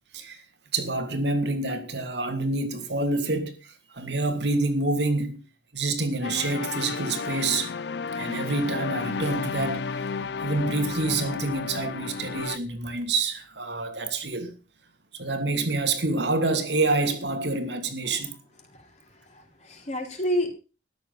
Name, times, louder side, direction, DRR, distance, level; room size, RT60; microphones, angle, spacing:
voice 1, 0.7-5.4 5.7-7.7 8.1-14.5 15.1-18.4, right 2 dB, 75° right, 2.7 m, -27 dB
sound 1, 6.2-12.6, left 5 dB, 70° left, 0.6 m, -32 dB
voice 2, 18.6-20.5, equal, 40° left, 3.9 m, -31 dB
13.0 x 10.5 x 5.4 m
head